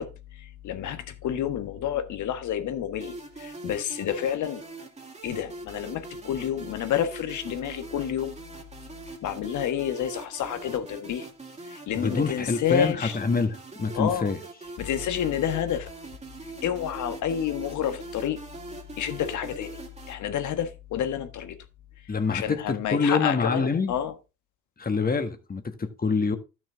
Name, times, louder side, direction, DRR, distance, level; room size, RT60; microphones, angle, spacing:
voice 1, 0.0-4.6 5.2-8.3 9.2-11.3 11.6-13.2 13.9-14.3 14.8-15.9 16.6-18.4 19.0-19.8 20.1-21.6 22.3-24.1, left 9 dB, 75° left, 1.4 m, -29 dB
sound 1, 3.0-20.1, right 2 dB, 20° right, 2.3 m, -42 dB
voice 2, 12.0-14.4 22.1-23.9 24.8-26.4, left 4 dB, 30° left, 1.6 m, -26 dB
12.0 x 6.4 x 3.6 m
cardioid pair, 90°, 30 cm